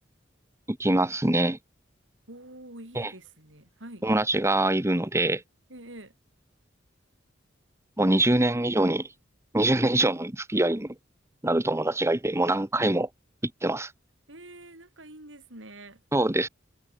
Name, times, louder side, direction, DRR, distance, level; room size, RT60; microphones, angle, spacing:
voice 1, 0.7-1.6 2.9-3.1 4.0-5.4 8.0-9.1 9.5-10.9 11.4-13.1 13.6-13.9 16.1-16.5, right 1 dB, 15° right, 1.3 m, -24 dB
voice 2, 2.3-4.1 5.7-6.1 14.3-16.0, right 1 dB, 75° right, 7.0 m, -46 dB
head